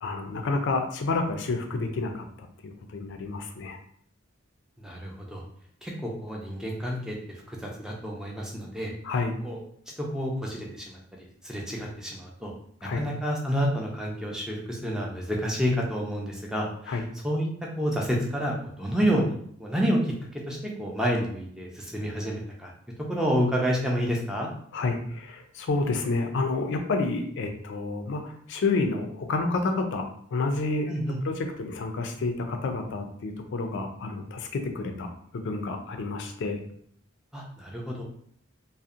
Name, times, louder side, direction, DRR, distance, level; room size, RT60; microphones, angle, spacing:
voice 1, 0.0-2.2 2.6-3.8 9.0-9.3 12.8-13.0 16.9-17.0 24.7-30.1 30.3-30.9 31.2-35.1 35.3-36.6, left 3 dB, 65° left, 5 dB, 0.4 m, -29 dB
voice 2, 4.8-5.4 5.8-8.9 9.4-9.6 10.0-11.0 11.4-12.5 12.9-17.5 17.8-22.7 23.0-24.5 30.9-31.2 37.3-38.0, equal, 5° right, -2 dB, 0.4 m, -29 dB
2.7 x 2.0 x 2.4 m, 0.63 s
head